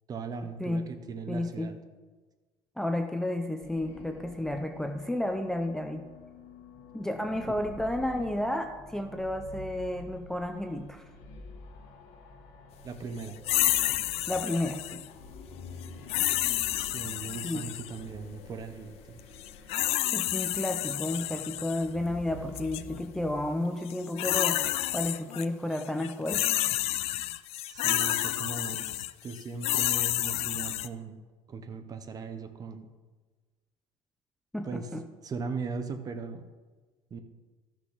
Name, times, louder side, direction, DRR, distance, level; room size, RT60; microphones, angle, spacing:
voice 1, 0.1-1.7 7.5-7.6 12.8-13.4 16.8-19.2 27.7-31.2 31.5-32.9 34.6-34.9 35.2-36.5 37.1-37.2, right 4 dB, 30° right, 9 dB, 0.8 m, -38 dB
voice 2, 1.3-1.7 2.8-6.0 6.9-11.0 14.3-15.0 17.4-17.7 20.1-26.5 34.5-35.0, left 1 dB, 5° left, 5 dB, 0.5 m, -32 dB
sound 1, 3.6-23.3, left 3 dB, 80° left, 1.6 m, -48 dB
sound 2, 13.4-15.1 16.1-17.9 19.4-21.8 22.5-22.8 23.9-25.4 25.7-30.9, left 14 dB, 60° left, 0.4 m, -29 dB
14.0 x 6.0 x 4.0 m, 1.3 s
cardioid pair, 130°, 12 cm